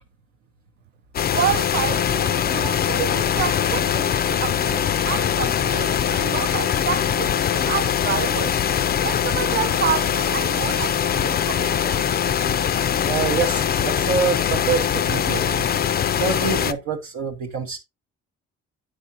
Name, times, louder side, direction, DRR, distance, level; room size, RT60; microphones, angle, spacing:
sound 1, 1.1-16.7, left 9 dB, 35° left, 0.4 m, -22 dB
voice 1, 1.3-8.6 9.0-12.0, right 10 dB, 35° right, 0.4 m, -29 dB
voice 2, 13.1-15.7 16.2-17.8, right 6 dB, 70° right, 0.9 m, -26 dB
8.0 x 4.9 x 2.7 m
cardioid pair, 90°, 30 cm